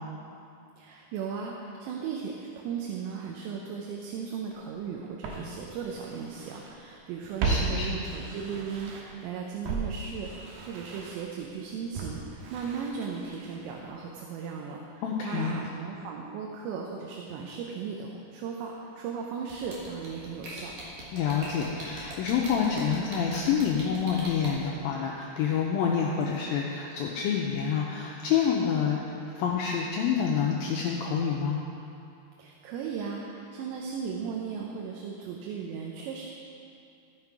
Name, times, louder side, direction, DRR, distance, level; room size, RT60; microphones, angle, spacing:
voice 1, 0.8-20.7 32.4-36.3, right 6 dB, 90° right, -1 dB, 3.0 m, -37 dB
Walk footsteps, 4.5-4.6 5.2-6.7 7.0-9.2 9.6-13.7 14.0-14.1, right 3 dB, 75° right, 2.7 m, -35 dB
voice 2, 7.4-8.0 15.0-15.6 21.1-29.0 29.4-31.6, left 7 dB, 90° left, -2 dB, 2.1 m, -27 dB
sound 1, 19.5-24.5, right 2 dB, 55° right, 2.8 m, -41 dB
15.0 x 5.8 x 4.7 m, 2.6 s
omnidirectional pair, 4.9 m